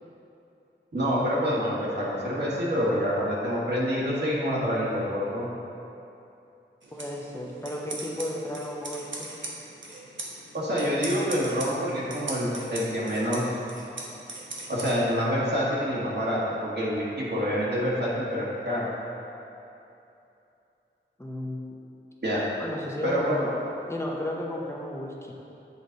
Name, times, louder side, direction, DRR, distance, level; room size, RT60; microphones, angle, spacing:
voice 1, 0.9-5.5 10.5-13.4 14.7-18.9 22.2-22.4 23.0-23.5, equal, 60° right, -7 dB, 1.5 m, -27 dB
sound 1, 6.8-14.9, right 2 dB, 75° right, 1.0 m, -40 dB
voice 2, 6.9-9.3 21.2-21.8 22.6-23.6 23.9-25.3, left 1 dB, 15° left, -1 dB, 0.8 m, -33 dB
8.2 x 4.0 x 4.0 m, 2.8 s
wide cardioid pair, 60°, 20 cm